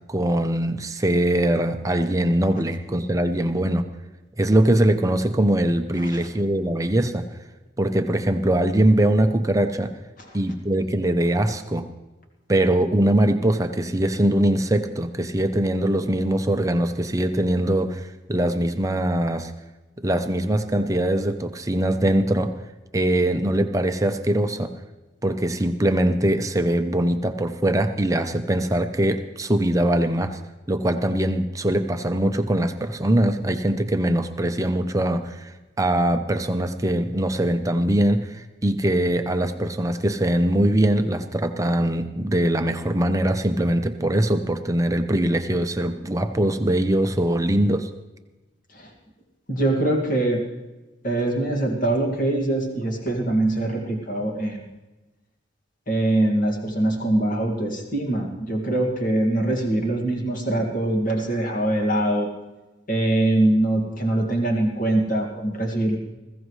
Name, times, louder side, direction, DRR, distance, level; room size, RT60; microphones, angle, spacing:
voice 1, 0.1-3.9 4.4-7.3 7.8-9.9 10.3-11.9 12.5-19.5 20.0-22.5 22.9-24.7 25.2-30.4 30.7-47.9, right 1 dB, 20° right, 7 dB, 0.7 m, -22 dB
voice 2, 49.5-50.4 51.0-54.6 55.9-62.3 62.9-66.0, right 1 dB, 50° left, 1 dB, 2.1 m, -23 dB
20.5 x 15.5 x 3.2 m, 1.1 s
head